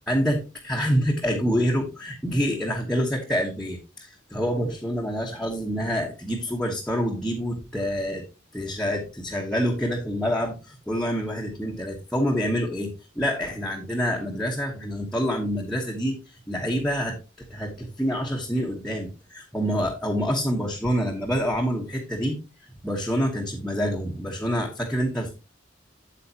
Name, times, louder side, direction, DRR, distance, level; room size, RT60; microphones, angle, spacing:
voice 1, 0.1-8.2 8.5-17.2 17.5-22.4 22.8-25.3, equal, 5° left, -2 dB, 1.1 m, -27 dB
8.4 x 7.9 x 2.8 m, 0.29 s
head